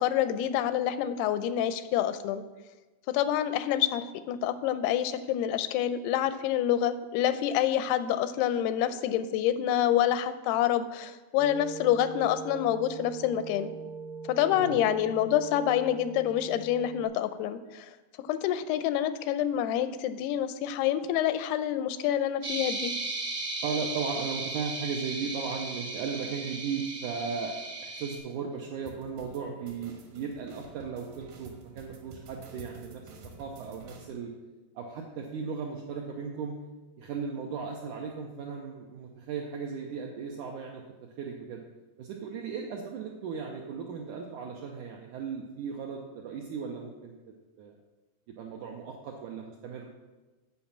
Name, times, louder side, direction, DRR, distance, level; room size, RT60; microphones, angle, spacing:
voice 1, 0.0-2.4 3.1-13.7 14.3-17.9 18.3-22.9, left 11 dB, 85° left, 12 dB, 2.6 m, -27 dB
sound 1, 11.4-17.0, right 4 dB, 70° left, 0.7 m, -41 dB
voice 2, 14.5-14.9 23.6-33.0 33.4-34.3 34.8-36.6 37.0-41.6 42.0-47.2 47.6-47.7 48.4-49.9, right 5 dB, 80° right, 0 dB, 1.8 m, -36 dB
sound 2, 22.4-28.2, right 2 dB, 45° right, 1.1 m, -36 dB
sound 3, 28.9-34.1, right 3 dB, 65° right, 2.6 m, -49 dB
8.4 x 5.7 x 7.2 m, 1.2 s
omnidirectional pair, 4.5 m